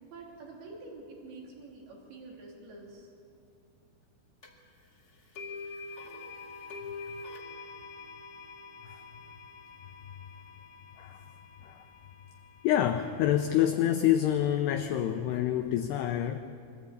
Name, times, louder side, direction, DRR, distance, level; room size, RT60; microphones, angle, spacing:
voice 1, 0.0-3.1, right 3 dB, 55° right, -1 dB, 5.0 m, -47 dB
sound 1, 4.4-4.5 5.3-13.4, left 4 dB, 55° left, 1.0 m, -45 dB
voice 2, 12.6-16.4, left 11 dB, 90° left, 6 dB, 2.3 m, -27 dB
24.0 x 14.5 x 8.5 m, 2.5 s
omnidirectional pair, 5.8 m